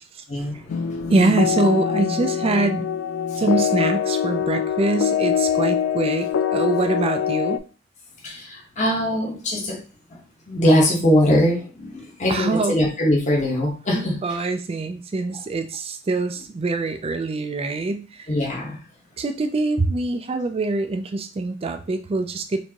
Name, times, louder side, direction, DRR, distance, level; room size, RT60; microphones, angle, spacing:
voice 1, 0.3-1.1 3.3-3.4 8.2-9.8 10.5-14.2 18.3-18.8, left 1 dB, 35° left, -1 dB, 1.1 m, -21 dB
sound 1, 0.7-7.6, left 8 dB, 65° left, 0.3 m, -23 dB
voice 2, 1.1-2.9 3.4-7.6 12.3-12.8 13.9-18.3 19.2-22.6, right 3 dB, 30° right, 6 dB, 0.4 m, -24 dB
4.4 x 2.7 x 2.8 m, 0.35 s
head